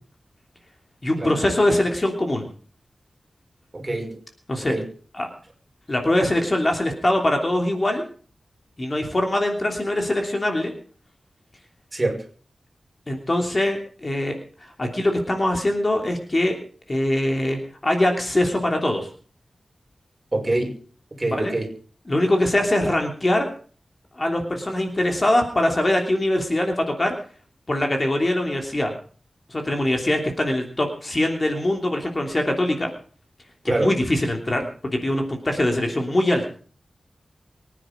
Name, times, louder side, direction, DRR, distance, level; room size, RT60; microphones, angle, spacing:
voice 1, 1.0-2.5 4.5-4.7 5.1-5.3 5.9-8.0 8.8-10.7 13.1-16.6 16.9-19.1 21.3-21.5 22.1-23.5 24.1-27.1 27.7-28.9 29.5-32.9 33.8-34.6 34.9-36.5, left 1 dB, 30° left, 3 dB, 3.1 m, -22 dB
voice 2, 3.7-4.2 4.6-4.9 11.9-12.2 20.3-20.8 21.2-21.7 33.7-33.9, right 2 dB, 25° right, 2 dB, 5.8 m, -25 dB
24.0 x 10.0 x 5.2 m, 0.42 s
wide cardioid pair, 110°, 0 cm